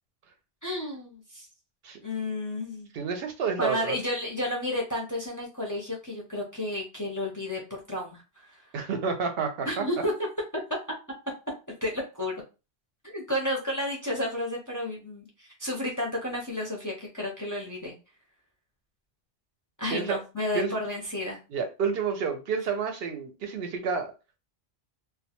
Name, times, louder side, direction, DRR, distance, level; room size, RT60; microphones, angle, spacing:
voice 1, 0.6-1.5 2.0-2.9 3.6-7.6 7.9-8.6 9.7-10.1 11.8-12.3 13.0-17.9 19.8-21.4, left 1 dB, 25° left, 0.5 m, -32 dB
voice 2, 2.9-3.9 8.7-9.8 19.9-20.2 20.5-20.8 21.5-24.1, right 5 dB, 75° right, 0.8 m, -29 dB
2.2 x 2.2 x 2.8 m
omnidirectional pair, 1.1 m